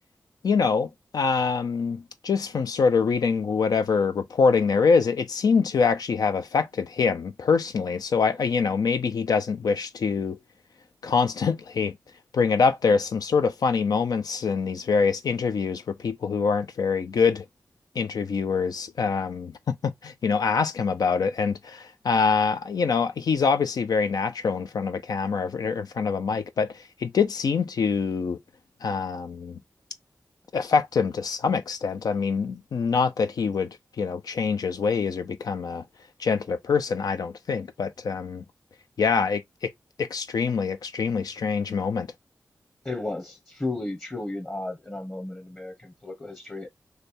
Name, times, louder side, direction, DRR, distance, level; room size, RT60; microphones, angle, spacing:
voice 1, 0.4-10.4 11.0-11.9 12.3-17.4 18.0-26.7 27.0-28.4 28.8-29.6 30.5-35.8 36.2-38.4 39.0-39.4 40.0-42.1, left 5 dB, 80° left, 0.5 m, -25 dB
voice 2, 42.8-46.7, left 2 dB, 30° left, 1.0 m, -34 dB
3.3 x 2.4 x 4.1 m
cardioid pair, 40°, 6 cm